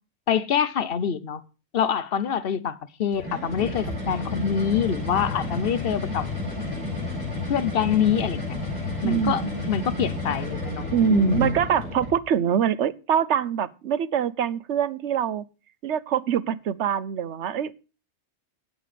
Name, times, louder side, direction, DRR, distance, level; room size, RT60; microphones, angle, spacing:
voice 1, 0.3-1.4 1.7-6.3 7.5-8.6 9.0-11.6, left 7 dB, 60° left, 1.0 m, -25 dB
sound 1, 3.1-12.2, left 2 dB, 35° left, 7.5 m, -31 dB
voice 2, 9.0-9.5 10.9-15.4 15.8-17.7, right 8 dB, 85° right, 1.1 m, -24 dB
18.5 x 7.7 x 3.3 m
omnidirectional pair, 1.2 m